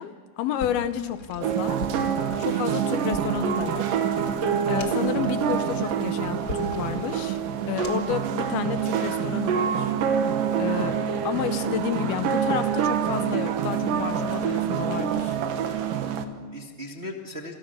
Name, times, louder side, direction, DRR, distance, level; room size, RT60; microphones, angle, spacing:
voice 1, 0.0-1.8 2.4-3.9 4.7-7.4 7.7-9.9 10.6-11.0 11.2-15.4, left 10 dB, 90° left, 11 dB, 3.0 m, -30 dB
sound 1, 0.6-8.2, left 2 dB, 30° left, 2.4 m, -42 dB
sound 2, 1.4-16.2, right 8 dB, 70° right, 2.9 m, -26 dB
voice 2, 2.4-2.7 15.9-17.5, left 1 dB, 25° right, 1 dB, 1.4 m, -39 dB
29.0 x 28.5 x 6.7 m, 1.6 s
omnidirectional pair, 4.3 m